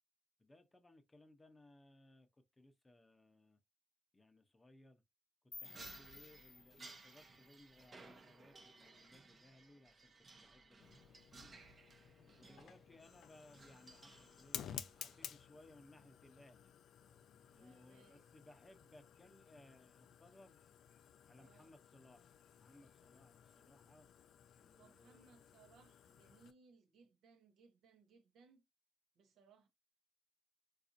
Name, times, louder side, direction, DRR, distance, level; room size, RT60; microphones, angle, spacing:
voice 1, 0.4-2.3 2.6-3.6 4.1-5.0 5.6-11.1 11.3-11.6 12.4-16.7 17.5-20.6 21.3-24.1 24.6-25.5, left 1 dB, 20° left, 0.6 m, -64 dB
sound 1, 5.5-8.4, left 5 dB, 45° left, 0.8 m, -57 dB
sound 2, 5.6-15.3, right 3 dB, 35° right, 0.7 m, -60 dB
voice 2, 5.6-6.1 12.4-12.8 17.0-18.3 21.3-21.7 24.8-28.6 29.2-29.7, right 5 dB, 75° right, 0.8 m, -68 dB
Fire, 10.8-26.5, left 9 dB, 70° left, 0.4 m, -55 dB
4.0 x 2.5 x 2.5 m
cardioid pair, 90°, 0 cm